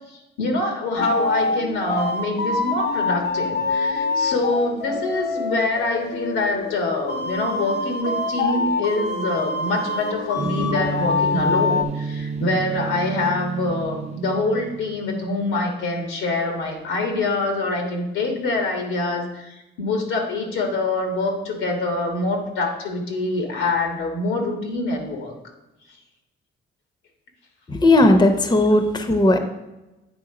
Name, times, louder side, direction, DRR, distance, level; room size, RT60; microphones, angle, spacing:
voice 1, 0.1-25.3, left 2 dB, 90° left, 2 dB, 1.5 m, -25 dB
sound 1, 1.0-11.8, left 3 dB, 55° left, 0.8 m, -25 dB
sound 2, 10.4-15.2, right 4 dB, 35° right, 0.7 m, -31 dB
voice 2, 27.7-29.4, left 1 dB, 20° left, 6 dB, 0.7 m, -16 dB
8.8 x 3.6 x 4.9 m, 1.0 s
cardioid pair, 90°, 20 cm